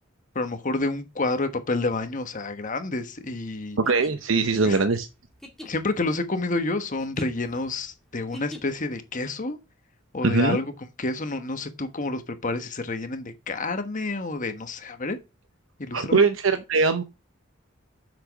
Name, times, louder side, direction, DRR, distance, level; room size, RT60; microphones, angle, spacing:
voice 1, 0.3-3.8 4.6-4.8 5.6-9.6 10.1-10.7 11.0-15.2 15.8-16.2, left 2 dB, 40° left, 1.3 m, -29 dB
sound 1, 3.8-9.0, left 1 dB, ahead, 2.1 m, -45 dB
voice 2, 3.8-5.1 10.2-10.6 15.9-17.0, right 4 dB, 90° right, 0.8 m, -21 dB
7.7 x 6.3 x 6.3 m
head